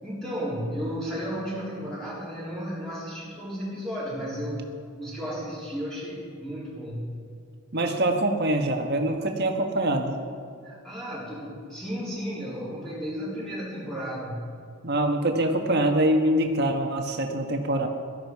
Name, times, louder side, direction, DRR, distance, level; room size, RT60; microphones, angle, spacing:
voice 1, 0.0-4.7 5.0-7.1 10.6-14.4, equal, 5° left, -9 dB, 3.8 m, -33 dB
voice 2, 7.7-10.2 14.8-17.9, right 1 dB, 45° right, 3 dB, 1.5 m, -24 dB
17.5 x 13.5 x 4.8 m, 2.3 s
head